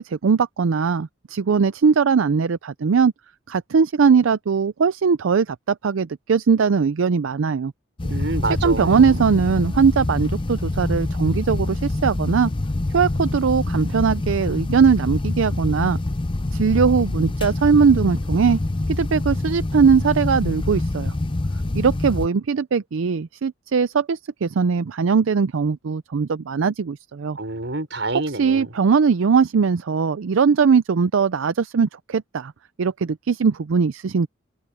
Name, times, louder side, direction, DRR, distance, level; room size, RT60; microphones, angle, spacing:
voice 1, 0.0-3.1 3.5-7.7 8.6-12.5 12.9-16.0 16.5-18.6 18.9-21.1 21.7-27.4 28.4-32.5 32.8-34.3, right 5 dB, 90° right, 0.5 m, -20 dB
sound 1, 8.0-22.3, left 2 dB, 25° left, 0.5 m, -25 dB
voice 2, 8.0-9.2 27.4-28.7, right 2 dB, 70° right, 5.5 m, -28 dB
head